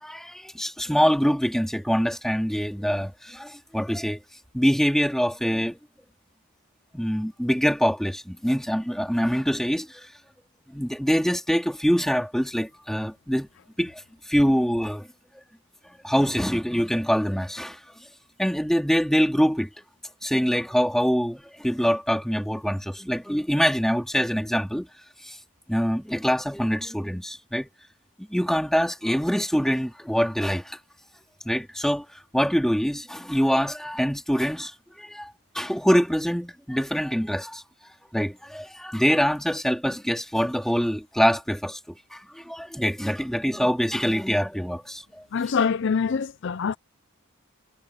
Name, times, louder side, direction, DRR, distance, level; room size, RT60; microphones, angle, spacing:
voice 1, 0.0-4.2 4.5-5.8 6.9-10.1 10.7-13.5 13.8-15.1 16.0-17.8 18.4-19.7 20.2-24.9 25.2-25.4 25.7-27.7 28.2-30.8 31.4-37.6 38.1-45.2, equal, ahead, 3.1 m, -24 dB
voice 2, 45.3-46.8, left 6 dB, 55° left, 0.4 m, -24 dB
head